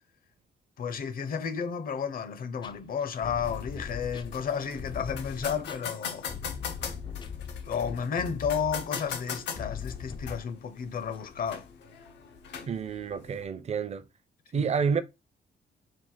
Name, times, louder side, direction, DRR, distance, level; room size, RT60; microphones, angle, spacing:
voice 1, 0.8-6.3 7.6-11.7 14.5-14.7, left 7 dB, 55° left, 0.8 m, -32 dB
sound 1, 2.6-10.4, left 6 dB, 25° left, 0.4 m, -40 dB
sound 2, 3.4-13.4, left 7 dB, 85° left, 0.9 m, -41 dB
voice 2, 12.7-14.0 14.5-15.0, right 6 dB, 40° right, 0.6 m, -29 dB
4.6 x 2.4 x 3.8 m
cardioid pair, 115°, 17 cm